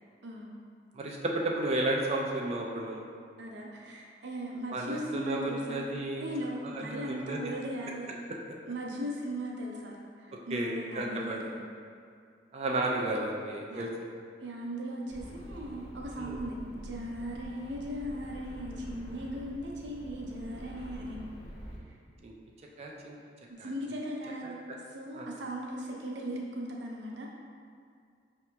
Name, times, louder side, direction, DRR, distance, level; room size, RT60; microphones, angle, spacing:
voice 1, 1.0-3.0 4.7-6.3 6.9-7.4 10.5-11.4 12.5-13.9 16.2-16.4 22.2-22.3 22.8-23.2 23.6-23.7 24.4-24.5 25.1-25.3, right 2 dB, 35° right, -1 dB, 0.4 m, -32 dB
voice 2, 3.4-5.8 6.2-8.1 8.7-11.5 13.7-13.9 14.4-21.2 23.6-27.3, equal, 75° right, -2 dB, 0.6 m, -38 dB
sound 1, 15.1-21.8, equal, 40° left, 0.8 m, -46 dB
6.1 x 2.8 x 2.3 m, 2.2 s
head